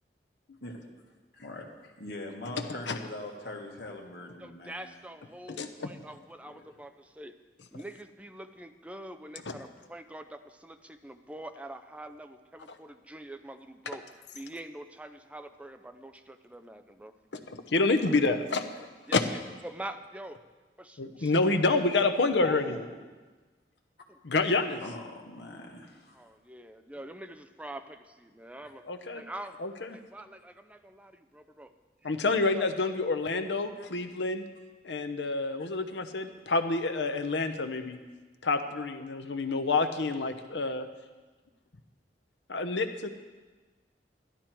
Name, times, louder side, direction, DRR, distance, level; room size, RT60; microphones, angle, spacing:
voice 1, 2.0-5.0 6.4-6.8 22.4-22.9 24.8-26.2 28.6-28.7 33.8-33.9 35.6-35.7, left 2 dB, 65° left, 0 dB, 1.8 m, -42 dB
voice 2, 4.4-6.9 7.2-7.3 7.7-14.0 14.3-17.1 19.1-19.2 19.6-20.4 20.8-21.3 26.2-28.8 29.1-29.5 30.1-31.7 32.0-32.4, right 1 dB, 10° right, 8 dB, 0.5 m, -45 dB
voice 3, 5.5-5.9 9.5-9.6 17.3-19.2 21.0-22.6 24.2-24.8 28.8-29.2 29.6-30.0 32.0-34.4 34.8-38.0 38.4-40.9 42.5-43.1, left 3 dB, 85° left, 8 dB, 0.8 m, -28 dB
11.5 x 11.5 x 4.5 m, 1.3 s
head